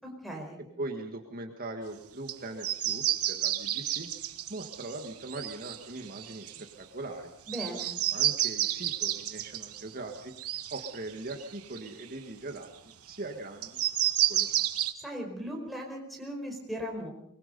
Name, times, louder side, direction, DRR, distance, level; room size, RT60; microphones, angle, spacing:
voice 1, 0.0-0.6 7.5-8.0 15.0-17.1, equal, ahead, 2 dB, 4.9 m, -38 dB
voice 2, 0.8-4.1 4.5-7.3 8.1-10.3 10.7-13.8 14.3-14.5, right 2 dB, 40° right, 4 dB, 1.8 m, -40 dB
sound 1, 2.3-2.4 2.6-6.8 7.5-12.1 12.6-12.7 13.6-14.9, right 12 dB, 85° right, 1.3 m, -31 dB
24.0 x 21.5 x 5.4 m, 0.76 s
head